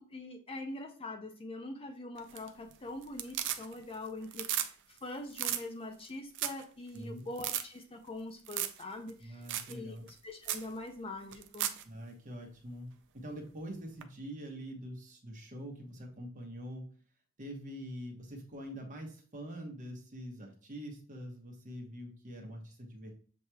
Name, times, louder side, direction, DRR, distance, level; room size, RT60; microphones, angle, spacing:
voice 1, 0.0-9.4 9.7-10.0 10.2-11.7, left 2 dB, 25° left, 4 dB, 0.5 m, -43 dB
sound 1, 2.2-2.7 3.0-3.9 4.2-4.7 5.0-5.1 5.3-5.6 6.0-6.1 6.3-6.6 6.9-7.0 7.4-7.6 8.5-8.8 9.1-9.2 9.5-9.7 10.1-10.2 10.4-10.7 11.3-11.8 14.0-14.1, right 11 dB, 55° right, 0.4 m, -35 dB
voice 2, 6.9-7.2 9.2-10.1 11.8-16.9 17.4-23.1, equal, 35° right, 1 dB, 1.1 m, -44 dB
7.2 x 3.0 x 2.3 m, 0.42 s
head